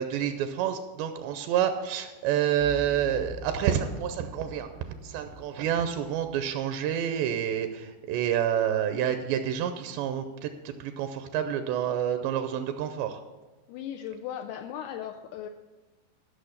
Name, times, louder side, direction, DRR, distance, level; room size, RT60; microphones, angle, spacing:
voice 1, 0.0-13.2, right 9 dB, 80° right, 8 dB, 2.7 m, -28 dB
sound 1, 2.6-6.7 7.0-7.1, left 2 dB, 65° left, 1.1 m, -44 dB
voice 2, 13.7-15.5, left 9 dB, 85° left, 5 dB, 2.3 m, -37 dB
13.5 x 6.2 x 6.4 m, 1.2 s
omnidirectional pair, 5.1 m